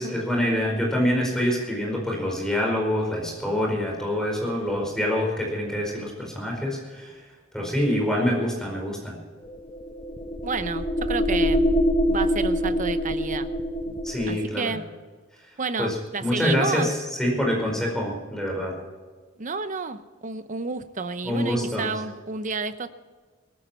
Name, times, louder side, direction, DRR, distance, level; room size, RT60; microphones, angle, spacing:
voice 1, 0.0-7.1 7.5-9.2 14.0-14.7 15.8-18.7 21.2-21.9, left 1 dB, 5° left, 0 dB, 4.9 m, -26 dB
sound 1, 9.5-14.5, equal, 25° left, 0.9 m, -24 dB
voice 2, 10.4-13.5 14.3-14.9 15.6-16.9 19.4-22.9, right 4 dB, 40° right, 11 dB, 0.9 m, -31 dB
18.5 x 14.5 x 4.5 m, 1.4 s
head